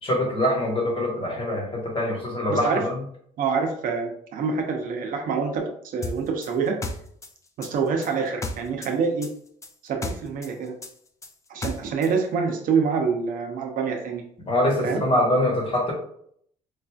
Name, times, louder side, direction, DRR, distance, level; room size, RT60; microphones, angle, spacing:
voice 1, 0.0-3.0 14.4-15.9, left 1 dB, 35° left, -1 dB, 1.3 m, -24 dB
voice 2, 2.5-2.8 3.4-6.8 7.6-9.3 9.8-10.7 11.5-14.2 14.8-15.0, right 5 dB, 65° right, 3 dB, 0.7 m, -26 dB
sound 1, 6.0-8.9 9.2-12.1, left 2 dB, 20° left, 0.4 m, -34 dB
4.6 x 2.5 x 2.3 m, 0.66 s
cardioid pair, 110°, 15 cm